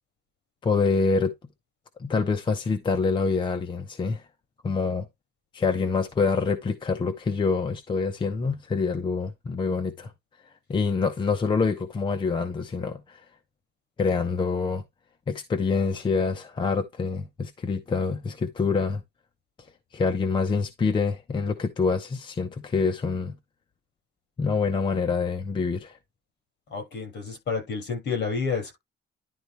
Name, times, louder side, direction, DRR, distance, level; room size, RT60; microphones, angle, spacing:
voice 1, 0.6-1.3 2.0-4.3 4.6-5.1 5.5-10.1 10.7-13.2 14.0-14.8 15.3-19.0 19.9-23.4 24.4-26.0, left 4 dB, 25° left, 0.7 m, -26 dB
voice 2, 26.7-28.8, left 5 dB, 60° left, 5.9 m, -30 dB
11.0 x 3.9 x 3.3 m
cardioid pair, 175°, 20 cm